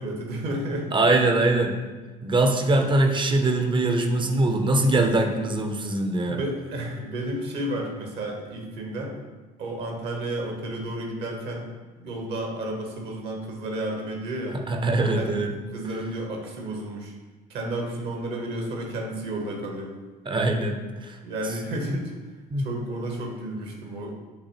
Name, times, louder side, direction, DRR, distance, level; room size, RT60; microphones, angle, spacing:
voice 1, 0.0-1.0 6.3-9.1 9.6-11.7 12.0-14.6 15.1-15.3 15.7-17.1 17.5-19.9 21.2-22.1 22.6-24.1, right 1 dB, 55° right, 1 dB, 1.1 m, -32 dB
voice 2, 0.9-1.7 2.2-6.4 14.7-15.5 20.3-21.1 22.5-22.7, right 2 dB, 25° right, 4 dB, 0.6 m, -22 dB
6.7 x 2.7 x 2.9 m, 1.3 s
figure-of-eight pair, 55°, 21 cm